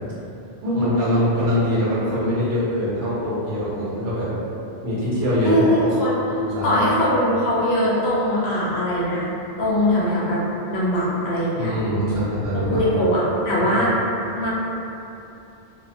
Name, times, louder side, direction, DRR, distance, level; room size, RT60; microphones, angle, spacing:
voice 1, 0.6-4.3 4.8-5.6 6.4-6.8 11.5-12.8 13.6-13.9, equal, 85° right, -9 dB, 1.1 m, -23 dB
voice 2, 5.4-6.2 6.6-9.3 9.6-10.4 10.7-11.7 12.5-14.0 14.3-14.5, equal, 80° left, -7 dB, 0.9 m, -21 dB
2.7 x 2.0 x 2.6 m, 2.8 s
omnidirectional pair, 1.0 m